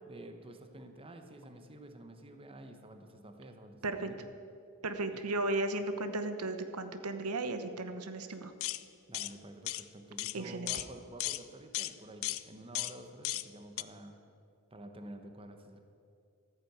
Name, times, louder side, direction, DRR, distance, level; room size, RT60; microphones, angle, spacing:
voice 1, 0.1-4.2 5.1-5.3 9.1-14.2 14.7-15.8, right 1 dB, 25° right, 6 dB, 1.0 m, -50 dB
voice 2, 4.8-8.5 10.3-10.7, right 2 dB, 90° right, 9 dB, 1.0 m, -35 dB
sound 1, 8.6-8.8 9.1-9.3 9.7-9.8 10.2-10.4 10.7-10.9 11.2-11.4 11.7-11.9 12.2-12.4 12.8-12.9 13.2-13.5 13.8-13.9, left 16 dB, 65° left, 0.5 m, -35 dB
13.5 x 9.6 x 8.0 m, 2.4 s
head